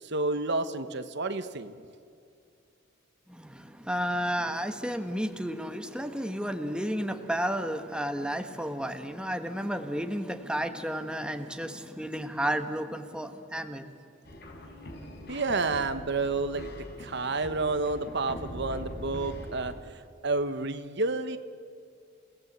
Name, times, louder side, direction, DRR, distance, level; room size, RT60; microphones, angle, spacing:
voice 1, 0.0-1.7 15.3-16.7 17.0-21.4, right 3 dB, 60° right, 10 dB, 1.2 m, -30 dB
voice 2, 3.3-13.9, equal, 5° right, 7 dB, 1.3 m, -32 dB
sound 1, 14.2-19.7, equal, 60° left, 4.5 m, -42 dB
28.5 x 17.5 x 8.2 m, 2.4 s
head